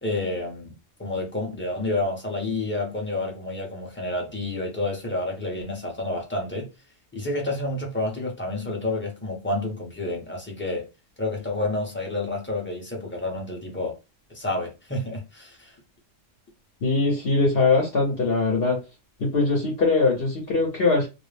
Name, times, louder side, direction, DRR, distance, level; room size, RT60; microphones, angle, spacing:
voice 1, 0.0-0.7 1.0-6.7 7.1-10.9 11.2-14.0 14.3-15.7, left 2 dB, 10° left, 0.6 m, -29 dB
voice 2, 16.8-18.8 19.2-21.1, left 3 dB, 55° left, 0.9 m, -21 dB
2.4 x 2.0 x 3.2 m
omnidirectional pair, 1.3 m